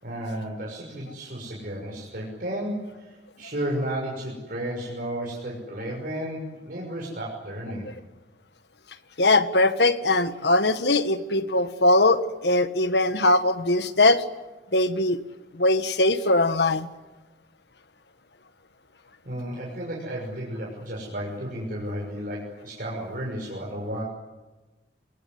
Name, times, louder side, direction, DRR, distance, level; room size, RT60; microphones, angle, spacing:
voice 1, 0.0-7.9 19.2-24.0, right 1 dB, 55° right, -2 dB, 6.3 m, -33 dB
voice 2, 9.2-14.2 14.7-15.2 15.6-16.9, left 2 dB, 70° left, 11 dB, 1.8 m, -21 dB
27.0 x 22.5 x 9.6 m, 1.1 s
head